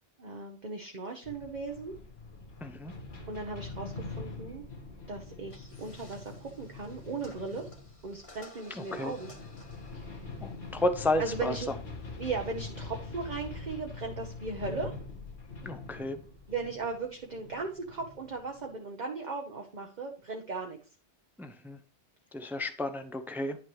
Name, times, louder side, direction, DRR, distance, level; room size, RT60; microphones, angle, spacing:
voice 1, 0.2-2.0 3.3-4.6 5.1-7.7 8.0-9.3 9.9-10.3 11.2-11.7 12.2-15.0 16.5-20.8, right 4 dB, 45° right, 2 dB, 1.0 m, -37 dB
sound 1, 1.2-18.7, left 3 dB, 50° left, 1.7 m, -44 dB
voice 2, 2.6-2.9 8.7-9.1 10.4-11.5 15.6-16.2 21.4-21.8 22.3-23.6, left 2 dB, ahead, 8 dB, 0.5 m, -32 dB
sound 2, 5.5-12.6, left 2 dB, 30° left, 1.3 m, -56 dB
10.0 x 6.0 x 3.1 m, 0.38 s
omnidirectional pair, 1.1 m